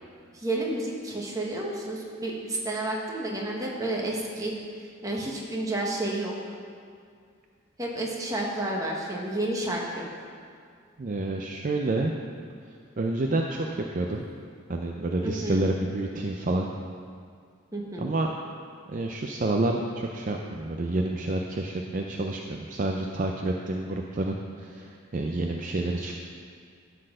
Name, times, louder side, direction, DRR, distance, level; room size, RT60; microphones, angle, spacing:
voice 1, 0.3-6.5 7.8-10.3 15.2-15.6 17.7-18.1, right 1 dB, 15° right, -2 dB, 1.2 m, -31 dB
voice 2, 11.0-12.1 13.0-14.3 14.7-16.7 18.0-18.3 18.9-26.2, right 2 dB, 40° right, 1 dB, 0.5 m, -29 dB
12.0 x 4.2 x 6.5 m, 2.2 s
head